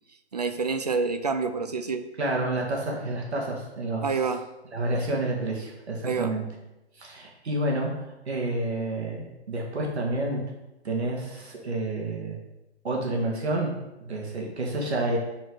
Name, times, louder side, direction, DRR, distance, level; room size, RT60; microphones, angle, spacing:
voice 1, 0.3-2.1 4.0-4.4 6.0-6.3, right 4 dB, 40° right, 9 dB, 0.4 m, -27 dB
voice 2, 2.2-4.1 4.7-6.4 7.0-7.9 8.3-10.4 10.8-12.4 12.8-13.7 14.0-15.2, right 2 dB, 70° right, -1 dB, 2.1 m, -29 dB
5.9 x 4.5 x 4.7 m, 0.99 s
hypercardioid pair, 160°, 34 cm